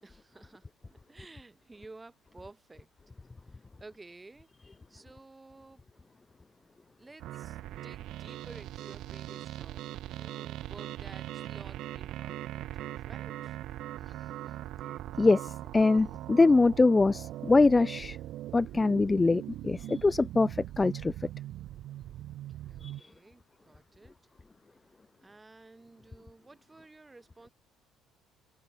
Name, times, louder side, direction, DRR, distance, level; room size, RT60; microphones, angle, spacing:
voice 1, 0.0-2.9 3.5-5.8 7.0-13.6 22.7-24.1 25.2-27.5, right 3 dB, 10° right, 5.0 m, -53 dB
sound 1, 7.2-23.0, right 14 dB, 55° right, 1.1 m, -41 dB
voice 2, 15.2-18.2 18.5-21.1 22.8-23.1, left 3 dB, 10° left, 0.3 m, -24 dB
cardioid pair, 175°, 0 cm